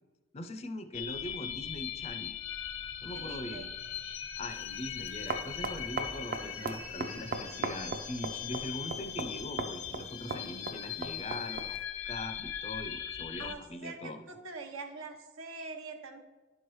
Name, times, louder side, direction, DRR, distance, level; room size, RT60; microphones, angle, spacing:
voice 1, 0.3-2.3 3.0-3.7 4.4-14.3, left 1 dB, 30° left, 8 dB, 0.4 m, -41 dB
sound 1, 0.9-13.5, left 9 dB, 90° left, 0.6 m, -40 dB
voice 2, 3.1-3.7 13.4-16.2, right 3 dB, 80° right, 5 dB, 0.9 m, -44 dB
sound 2, 4.5-11.8, right 3 dB, 45° right, 0.5 m, -40 dB
11.0 x 4.7 x 3.0 m, 1.2 s
head